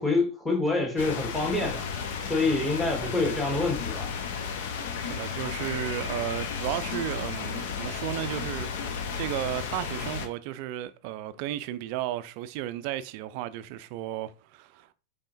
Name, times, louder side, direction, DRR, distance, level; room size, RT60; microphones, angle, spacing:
voice 1, 0.0-1.8 2.2-4.1, left 3 dB, 10° left, 1.4 m, -26 dB
sound 1, 1.0-10.3, left 6 dB, 55° left, 0.8 m, -33 dB
voice 2, 5.1-14.9, right 13 dB, 45° right, 0.4 m, -34 dB
5.4 x 3.5 x 2.6 m
figure-of-eight pair, 90°, 0 cm